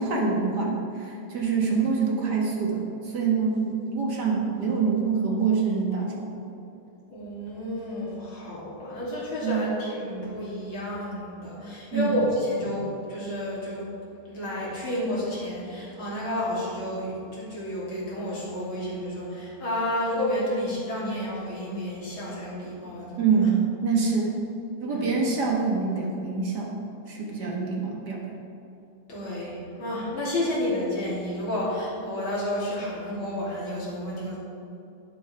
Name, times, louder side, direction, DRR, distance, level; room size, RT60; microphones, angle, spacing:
voice 1, 0.0-6.6 9.4-9.7 11.9-12.1 23.2-24.4 24.8-26.8 27.1-28.2, right 5 dB, 55° right, -1 dB, 1.9 m, -25 dB
voice 2, 7.1-13.8 14.3-23.2 24.9-25.1 27.3-27.6 29.1-34.4, left 1 dB, 75° left, -7 dB, 3.6 m, -31 dB
11.0 x 11.0 x 3.4 m, 2.7 s
omnidirectional pair, 2.2 m